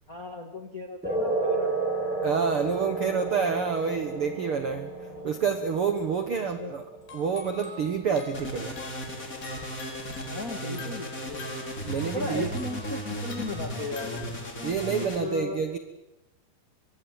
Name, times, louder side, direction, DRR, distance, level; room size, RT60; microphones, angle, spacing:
voice 1, 0.1-2.0 4.0-4.2 5.1-5.4 6.4-6.8 10.3-11.5 12.1-14.3 15.0-15.6, left 3 dB, 45° left, 5 dB, 1.1 m, -37 dB
sound 1, 1.0-8.0, right 3 dB, ahead, 7.5 m, -32 dB
voice 2, 2.2-4.9 5.2-6.8 7.1-8.8 11.8-12.5 14.6-15.8, right 6 dB, 75° right, 8 dB, 1.2 m, -28 dB
sound 2, 6.0-6.2 7.0-14.4, left 4 dB, 80° left, 6.8 m, -47 dB
sound 3, 8.3-15.2, equal, 20° left, 4.2 m, -35 dB
25.0 x 22.5 x 9.1 m, 0.95 s
omnidirectional pair, 4.9 m